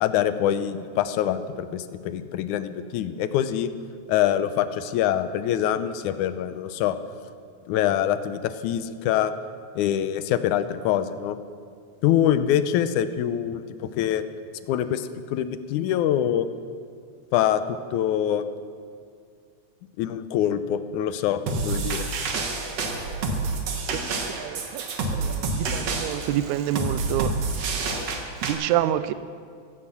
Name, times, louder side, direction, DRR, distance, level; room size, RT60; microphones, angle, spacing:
voice 1, 0.0-3.7 4.1-7.0 7.7-9.3 9.8-11.4 12.0-14.2 14.7-16.5 17.3-18.4 20.0-22.0, left 10 dB, 85° left, 12 dB, 2.1 m, -24 dB
sound 1, 21.5-28.5, right 3 dB, 60° right, 2.6 m, -28 dB
voice 2, 23.9-27.3 28.4-29.1, right 12 dB, 80° right, 15 dB, 1.9 m, -28 dB
15.5 x 15.0 x 6.0 m, 2.2 s
omnidirectional pair, 3.4 m